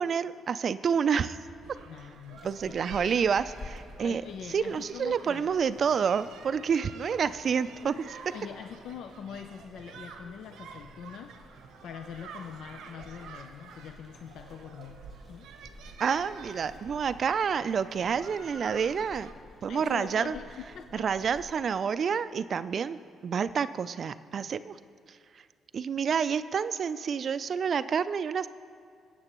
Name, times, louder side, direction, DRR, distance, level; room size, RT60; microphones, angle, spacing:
voice 1, 0.0-1.4 2.4-4.2 4.5-8.2 16.0-19.3 19.6-20.4 20.9-23.0 23.2-24.8 25.1-25.2 25.7-28.5, right 6 dB, 50° right, 14 dB, 0.3 m, -28 dB
sound 1, 1.6-19.3, right 5 dB, 90° right, 0.8 m, -49 dB
voice 2, 1.9-2.7 4.0-5.5 8.3-15.0 15.3-15.6 19.7-21.1, left 8 dB, 75° left, 7 dB, 0.4 m, -44 dB
sound 2, 2.3-21.5, left 2 dB, 50° left, 1.2 m, -53 dB
20.0 x 8.6 x 3.0 m, 2.2 s
cardioid pair, 90°, 0 cm